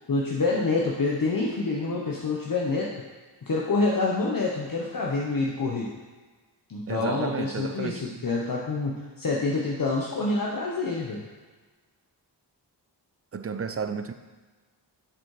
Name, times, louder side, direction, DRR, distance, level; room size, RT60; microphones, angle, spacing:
voice 1, 0.1-2.9 3.4-5.9 6.7-11.2, left 3 dB, 50° left, -3 dB, 1.0 m, -27 dB
voice 2, 6.9-8.2 13.3-14.1, right 5 dB, 35° right, 9 dB, 0.5 m, -32 dB
7.4 x 5.3 x 4.8 m, 1.4 s
wide cardioid pair, 85°, 43 cm